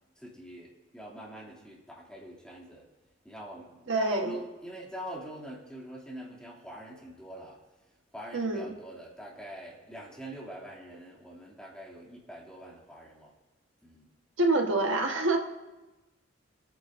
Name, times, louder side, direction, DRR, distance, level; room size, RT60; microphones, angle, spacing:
voice 1, 0.2-2.9 3.2-7.6 8.1-13.3 13.8-14.1, right 1 dB, 5° left, -5 dB, 2.6 m, -43 dB
voice 2, 3.9-4.3 8.3-8.7 14.4-15.4, right 2 dB, 90° right, 3 dB, 1.3 m, -26 dB
25.5 x 9.1 x 2.6 m, 1.1 s
head